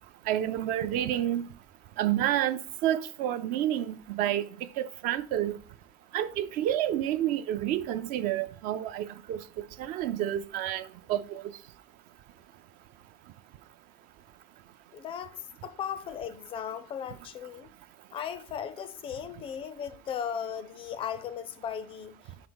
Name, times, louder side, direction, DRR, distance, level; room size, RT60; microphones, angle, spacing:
voice 1, 0.3-1.5 2.0-4.5 4.8-5.6 6.1-11.4, right 12 dB, 50° right, 0.5 m, -29 dB
voice 2, 14.9-17.7 18.1-22.3, left 8 dB, 30° left, 0.4 m, -37 dB
5.1 x 5.0 x 6.1 m
cardioid pair, 165°, 19 cm